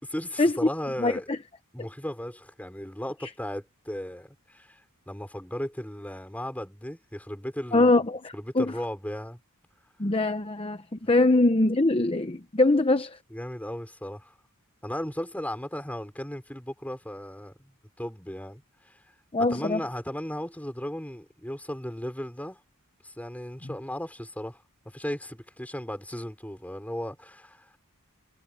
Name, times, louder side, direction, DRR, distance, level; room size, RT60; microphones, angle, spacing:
voice 1, 0.0-1.3 1.7-4.8 5.1-7.9 8.3-9.4 13.3-14.3 14.8-19.0 19.5-22.6 23.0-27.8, equal, 5° left, 5.4 m, -36 dB
voice 2, 1.0-1.4 7.7-8.7 10.0-13.2 19.3-19.8, left 2 dB, 25° left, 0.8 m, -23 dB
head